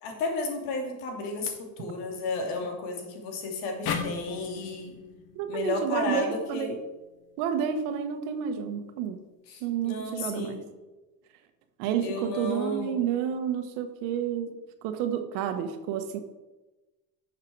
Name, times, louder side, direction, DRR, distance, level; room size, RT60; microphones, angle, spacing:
voice 1, 0.0-5.0 5.5-6.8 9.5-10.7 12.0-13.0, left 2 dB, 80° left, 2 dB, 2.9 m, -33 dB
sound 1, 3.9-7.1, left 6 dB, 50° left, 1.2 m, -37 dB
voice 2, 5.3-6.8 7.4-9.2 9.6-10.6 11.8-14.5 14.8-16.2, right 8 dB, 75° right, 8 dB, 1.3 m, -30 dB
11.5 x 6.8 x 4.7 m, 1.1 s
cardioid pair, 130°, 50 cm